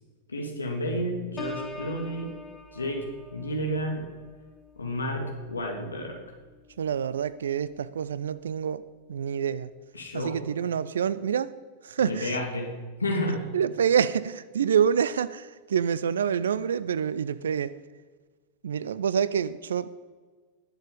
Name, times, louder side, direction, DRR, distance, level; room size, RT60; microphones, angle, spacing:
voice 1, 0.3-2.3 2.7-3.0 3.3-4.1 4.8-6.2 9.9-10.4 12.0-13.5, equal, 75° left, 1 dB, 2.5 m, -31 dB
Piano, 1.4-7.0 7.5-7.8, left 2 dB, 20° left, 1.5 m, -45 dB
voice 2, 6.8-8.8 9.1-9.7 10.1-11.5 11.8-12.4 13.5-17.7 18.6-19.9, right 8 dB, 65° right, 18 dB, 0.5 m, -27 dB
20.5 x 6.9 x 5.4 m, 1.4 s
figure-of-eight pair, 90°, 0 cm